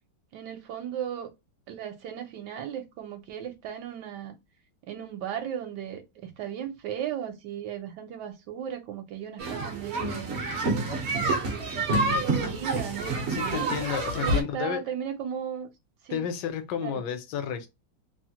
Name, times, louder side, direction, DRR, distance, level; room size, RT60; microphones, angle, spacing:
voice 1, 0.3-1.3 1.7-4.4 4.9-10.4 12.1-13.7 14.2-15.7 16.0-16.2 16.8-17.0, right 9 dB, 75° right, 1.2 m, -36 dB
sound 1, 9.4-14.4, right 2 dB, 60° right, 0.7 m, -28 dB
voice 2, 13.3-14.8 16.1-17.7, left 8 dB, 80° left, 1.3 m, -31 dB
3.1 x 2.0 x 2.7 m
omnidirectional pair, 1.9 m